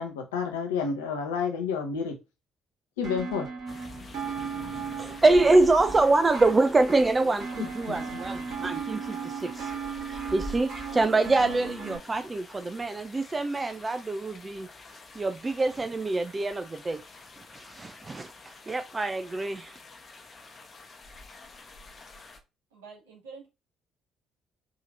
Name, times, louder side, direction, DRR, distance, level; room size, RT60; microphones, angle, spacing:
voice 1, 0.0-2.1 3.0-3.5 7.6-8.1, left 6 dB, 75° left, 0.8 m, -30 dB
sound 1, 3.0-12.0, right 6 dB, 55° right, 2.5 m, -36 dB
sound 2, 3.7-22.4, left 2 dB, 35° left, 0.9 m, -47 dB
voice 2, 4.9-9.7 10.0-14.7 15.2-17.0 17.5-18.3 18.7-19.7, right 2 dB, 25° right, 0.4 m, -25 dB
voice 3, 22.7-23.5, right 5 dB, 80° right, 1.8 m, -46 dB
4.9 x 2.8 x 2.5 m
figure-of-eight pair, 45°, 0 cm